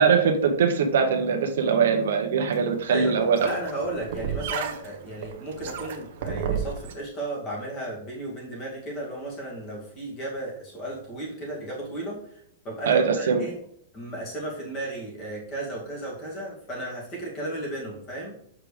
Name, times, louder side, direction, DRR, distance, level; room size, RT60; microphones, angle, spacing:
voice 1, 0.0-3.5 12.9-13.4, right 6 dB, 75° right, 4 dB, 1.0 m, -22 dB
sound 1, 2.5-6.9, right 7 dB, 55° right, 0.9 m, -33 dB
voice 2, 3.4-12.2 12.6-13.5 13.9-18.3, right 1 dB, 25° left, -3 dB, 2.2 m, -34 dB
6.7 x 4.9 x 3.3 m, 0.68 s
supercardioid pair, 170°, 0 cm